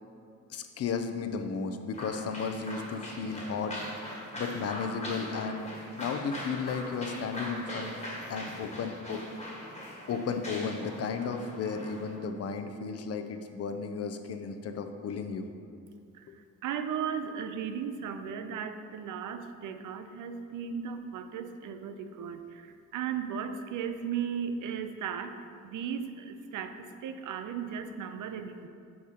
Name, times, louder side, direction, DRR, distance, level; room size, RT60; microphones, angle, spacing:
voice 1, 0.5-3.7 4.4-5.6 6.0-7.9 8.3-9.2 10.1-15.5, left 5 dB, 55° left, 7 dB, 0.6 m, -34 dB
sound 1, 1.9-12.2, left 1 dB, 20° left, 1.5 m, -41 dB
voice 2, 16.6-25.4 25.6-28.7, right 7 dB, 90° right, 8 dB, 0.6 m, -36 dB
8.4 x 6.6 x 2.9 m, 2.4 s
cardioid pair, 125°, 30 cm